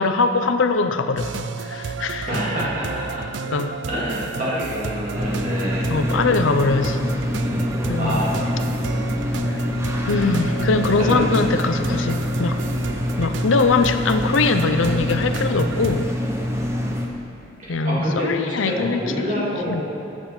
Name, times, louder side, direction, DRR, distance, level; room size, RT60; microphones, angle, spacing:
voice 1, 0.0-2.3 3.5-3.7 5.9-7.0 7.9-8.2 9.5-9.6 10.1-12.6 13.2-16.1 17.7-19.8, left 4 dB, 90° left, 8 dB, 0.6 m, -22 dB
sound 1, 1.2-16.1, right 5 dB, 70° right, 0.4 m, -32 dB
voice 2, 2.3-3.2 3.9-5.9 8.0-8.6 8.9-9.1 11.0-11.2 17.6-18.3 18.6-19.8, equal, 40° right, -7 dB, 2.5 m, -27 dB
sound 2, 5.1-17.1, left 1 dB, 15° right, 0.7 m, -25 dB
14.0 x 7.4 x 4.4 m, 2.8 s
head